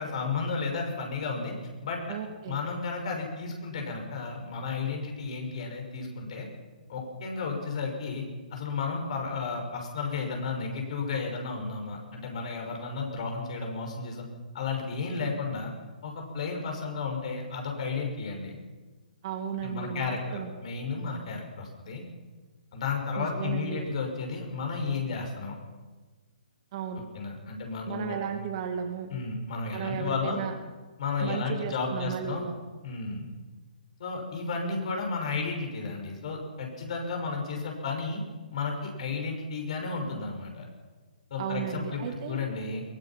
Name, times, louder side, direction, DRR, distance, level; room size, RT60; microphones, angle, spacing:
voice 1, 0.0-1.5 1.8-2.2 2.5-6.5 6.9-8.2 8.5-14.2 14.5-15.7 16.0-18.5 19.6-22.0 22.7-25.6 27.1-28.2 29.1-30.4 31.0-32.5 32.8-33.3 34.0-38.2 38.5-40.7 41.3-42.8, left 4 dB, 45° left, 2 dB, 5.8 m, -33 dB
voice 2, 2.1-2.6 19.2-20.5 23.2-23.9 26.7-27.0 27.9-29.1 29.7-30.5 31.2-32.5 41.4-42.4, right 7 dB, 35° right, 5 dB, 2.4 m, -34 dB
22.5 x 19.5 x 5.9 m, 1.3 s
figure-of-eight pair, 130°, 5 cm